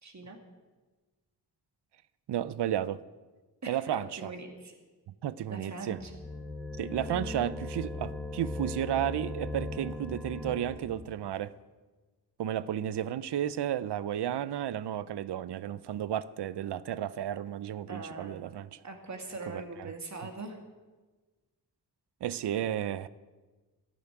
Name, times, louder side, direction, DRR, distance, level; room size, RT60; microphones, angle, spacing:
voice 1, 0.0-0.4 3.6-4.7 5.5-6.1 17.9-18.3 18.8-20.6, right 3 dB, 45° right, 2.4 m, -42 dB
voice 2, 2.3-3.0 3.7-4.3 5.2-6.0 6.8-11.5 12.4-18.8 19.5-19.9 22.2-23.1, right 11 dB, 90° right, 0.6 m, -33 dB
sound 1, 5.9-11.1, left 2 dB, ahead, 1.3 m, -38 dB
13.5 x 7.2 x 9.9 m
wide cardioid pair, 95°, 39 cm